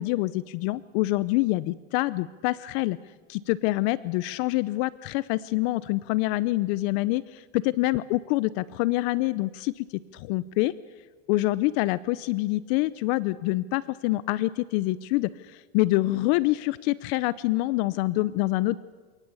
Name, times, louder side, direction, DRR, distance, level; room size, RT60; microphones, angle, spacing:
voice 1, 0.0-3.0 3.3-9.9 10.1-10.7 11.3-18.8, left 19 dB, 65° left, 18 dB, 0.8 m, -26 dB
28.5 x 18.5 x 8.4 m, 1.4 s
supercardioid pair, 110°, 33 cm